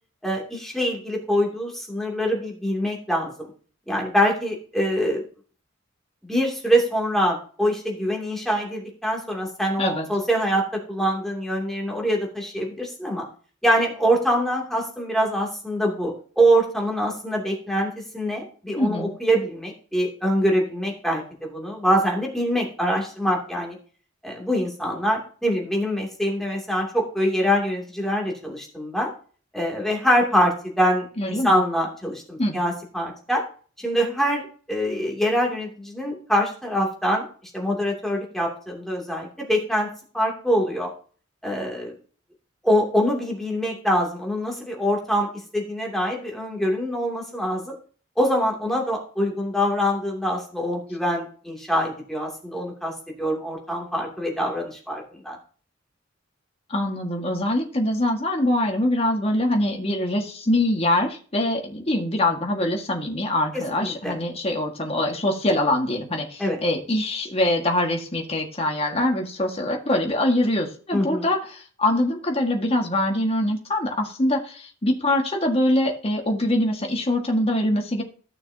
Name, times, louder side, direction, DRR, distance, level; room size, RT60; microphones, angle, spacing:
voice 1, 0.2-3.5 3.9-5.2 6.2-13.2 13.6-23.7 24.2-29.1 29.5-33.4 33.8-37.2 37.5-39.9 40.1-40.9 41.4-41.9 42.6-47.7 48.2-55.4 63.5-64.2 66.4-66.6 70.9-71.3, equal, ahead, -1 dB, 2.7 m, -24 dB
voice 2, 18.8-19.1 31.2-31.6 32.4-32.6 56.7-78.0, left 1 dB, 30° left, 2 dB, 1.8 m, -23 dB
15.0 x 6.4 x 2.8 m, 0.42 s
head